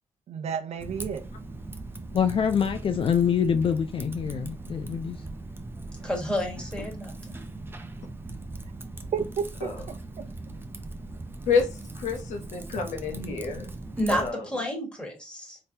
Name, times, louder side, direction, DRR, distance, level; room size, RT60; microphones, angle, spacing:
voice 1, 0.3-1.3 9.1-10.3, right 7 dB, 65° right, 0.5 m, -32 dB
Typing, 0.8-14.3, right 2 dB, 20° right, 0.5 m, -40 dB
voice 2, 2.1-5.2, left 7 dB, 50° left, 0.4 m, -25 dB
voice 3, 6.0-7.3 14.0-15.6, equal, 10° left, 1.6 m, -30 dB
voice 4, 11.9-13.7 14.1-14.4, left 5 dB, 90° left, 0.8 m, -28 dB
3.5 x 2.9 x 2.8 m
cardioid pair, 90°, 12 cm